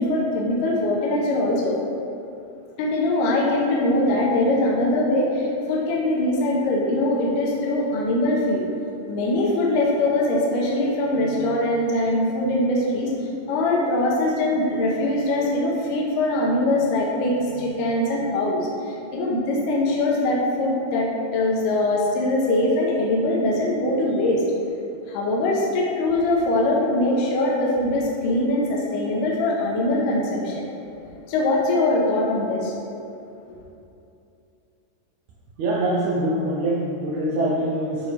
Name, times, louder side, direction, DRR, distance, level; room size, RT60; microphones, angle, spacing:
voice 1, 0.0-1.8 2.8-8.6 9.1-13.1 13.5-24.4 25.1-30.6 31.3-32.7, left 1 dB, 75° left, -3 dB, 2.3 m, -22 dB
voice 2, 35.6-38.1, right 1 dB, 85° right, -4 dB, 1.6 m, -24 dB
12.0 x 4.3 x 3.3 m, 2.7 s
omnidirectional pair, 4.2 m